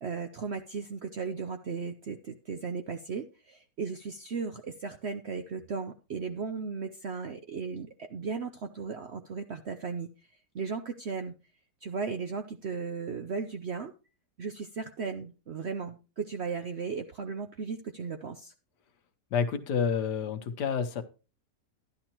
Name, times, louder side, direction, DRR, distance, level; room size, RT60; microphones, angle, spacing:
voice 1, 0.0-10.1 10.5-11.3 11.8-13.9 14.4-18.5, right 5 dB, 60° right, 7 dB, 0.7 m, -36 dB
voice 2, 19.3-21.0, left 6 dB, 75° left, 8 dB, 1.5 m, -29 dB
11.5 x 10.5 x 3.0 m, 0.33 s
omnidirectional pair, 1.8 m